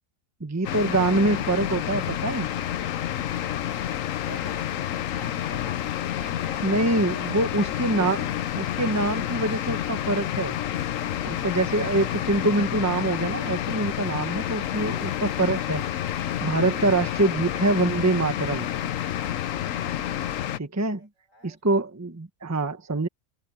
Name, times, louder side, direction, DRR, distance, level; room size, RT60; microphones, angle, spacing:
voice 1, 0.4-2.5 6.6-10.6 11.2-15.8 16.4-18.7 20.6-21.1 21.4-23.1, right 2 dB, 15° right, 1.0 m, -25 dB
sound 1, 0.6-20.6, left 11 dB, 80° left, 1.1 m, -29 dB
voice 2, 3.3-6.8 20.7-21.6, right 1 dB, 80° right, 7.9 m, -49 dB
omnidirectional pair, 1.3 m